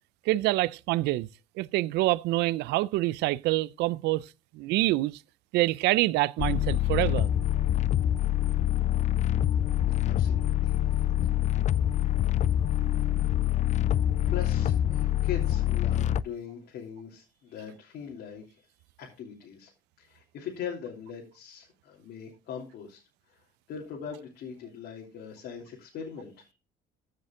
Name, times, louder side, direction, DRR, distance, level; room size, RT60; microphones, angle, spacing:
voice 1, 0.3-1.3 1.6-4.3 4.6-5.2 5.5-7.3, right 18 dB, 85° right, 0.4 m, -26 dB
sound 1, 6.4-16.2, left 11 dB, 45° left, 0.4 m, -25 dB
voice 2, 10.0-10.8 11.3-11.7 14.3-18.7 19.0-19.7 20.0-26.5, left 7 dB, 70° left, 3.2 m, -41 dB
14.5 x 6.6 x 3.7 m
cardioid pair, 110°, 17 cm